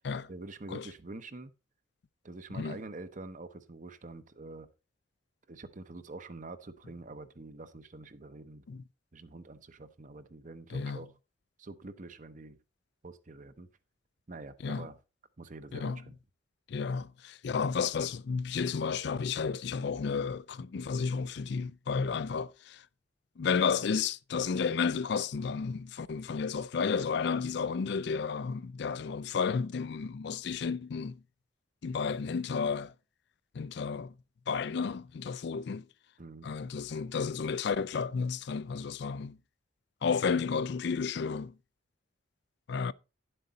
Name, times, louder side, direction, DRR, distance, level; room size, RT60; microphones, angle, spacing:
voice 1, 0.3-1.5 2.2-4.7 5.5-8.7 9.1-11.1 11.6-12.6 13.0-13.7 14.3-14.9 15.4-16.2 36.2-36.5, right 2 dB, 40° right, 0.8 m, -46 dB
voice 2, 16.7-22.8 23.4-31.2 31.8-32.9 33.5-34.1 34.5-35.8 36.4-39.4 40.0-41.5 42.7-42.9, left 5 dB, 60° left, 0.4 m, -32 dB
10.5 x 7.8 x 4.0 m
head